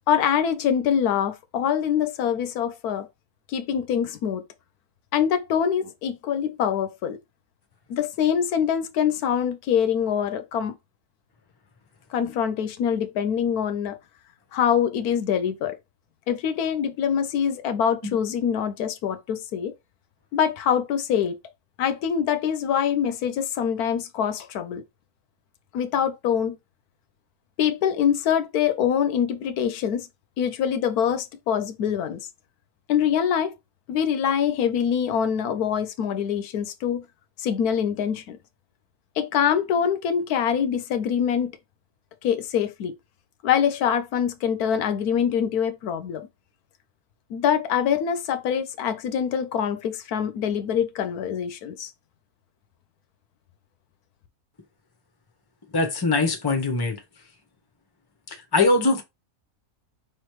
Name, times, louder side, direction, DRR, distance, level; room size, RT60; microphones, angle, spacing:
voice 1, 0.1-3.1 3.5-4.4 5.1-7.2 7.9-10.8 12.1-14.0 14.5-15.8 16.3-19.7 20.3-21.4 21.8-24.8 25.7-26.6 27.6-30.1 30.4-32.3 32.9-33.5 33.9-37.1 37.4-38.4 39.2-41.5 42.2-42.9 43.4-46.3 47.3-51.9, left 8 dB, 80° left, 1.1 m, -24 dB
voice 2, 55.7-57.0 58.3-59.0, left 3 dB, 20° left, 0.8 m, -22 dB
5.2 x 3.2 x 3.1 m
omnidirectional pair, 1.6 m